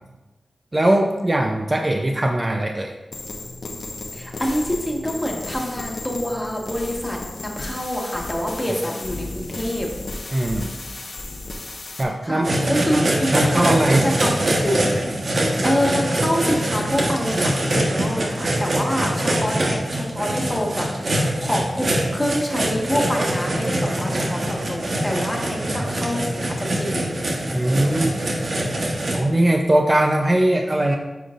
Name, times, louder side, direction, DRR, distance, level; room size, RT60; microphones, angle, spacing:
voice 1, 0.7-2.9 10.3-10.7 12.0-12.6 12.9-14.1 19.0-19.1 25.8-25.9 27.5-28.2 29.1-31.0, right 1 dB, 30° right, 2 dB, 0.5 m, -20 dB
sound 1, 3.1-12.0, left 2 dB, 65° left, 0.9 m, -34 dB
voice 2, 4.1-9.9 12.2-13.9 14.1-14.8 15.3-20.9 21.4-27.1, equal, 15° left, -1 dB, 1.4 m, -26 dB
sound 2, 12.4-29.2, right 1 dB, 65° right, 1.2 m, -23 dB
9.3 x 5.0 x 2.5 m, 1.1 s
wide cardioid pair, 75°, 0 cm